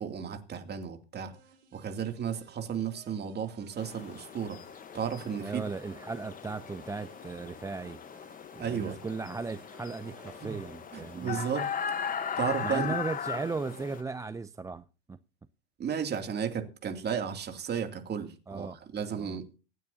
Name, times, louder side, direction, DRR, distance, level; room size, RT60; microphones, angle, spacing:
voice 1, 0.0-1.4 1.7-4.6 4.9-5.6 8.6-9.0 10.4-10.5 10.9-11.7 12.4-13.0 15.8-19.5, right 7 dB, 30° right, 2.6 m, -34 dB
sound 1, 1.3-14.1, right 10 dB, 80° right, 4.1 m, -59 dB
sound 2, 3.8-14.0, left 7 dB, 25° left, 1.1 m, -38 dB
voice 2, 5.4-8.0 8.5-11.4 12.6-15.2 18.5-18.8 19.2-19.4, right 4 dB, 10° right, 0.5 m, -37 dB
25.0 x 9.4 x 2.8 m
hypercardioid pair, 90°, 33 cm